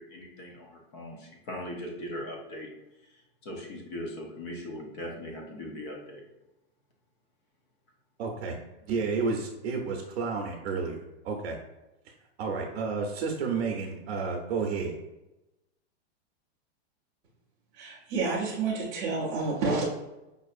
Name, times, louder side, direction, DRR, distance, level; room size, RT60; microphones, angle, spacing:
voice 1, 0.0-2.7 3.4-6.2, left 1 dB, 30° left, 1 dB, 0.6 m, -39 dB
voice 2, 8.2-8.6 8.8-11.6 12.4-14.9, right 4 dB, 75° right, 1 dB, 0.7 m, -31 dB
voice 3, 17.7-19.8, right 4 dB, 15° right, -8 dB, 0.5 m, -29 dB
5.3 x 2.6 x 2.4 m, 0.99 s
supercardioid pair, 175°, 32 cm